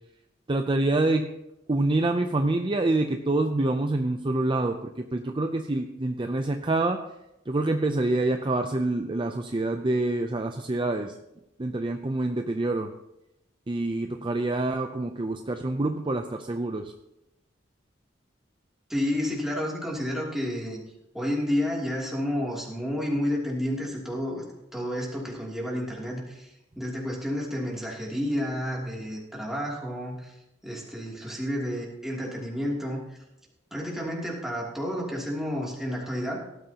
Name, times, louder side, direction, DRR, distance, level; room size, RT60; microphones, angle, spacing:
voice 1, 0.5-1.3 1.7-7.0 7.5-11.2 11.6-12.9 13.7-16.9, right 2 dB, 25° right, 6 dB, 0.6 m, -26 dB
voice 2, 18.9-20.8 21.1-24.4 24.7-26.5 26.8-30.3 30.6-33.0 33.7-36.4, equal, ahead, -4 dB, 2.9 m, -30 dB
18.0 x 12.5 x 2.9 m, 0.89 s
head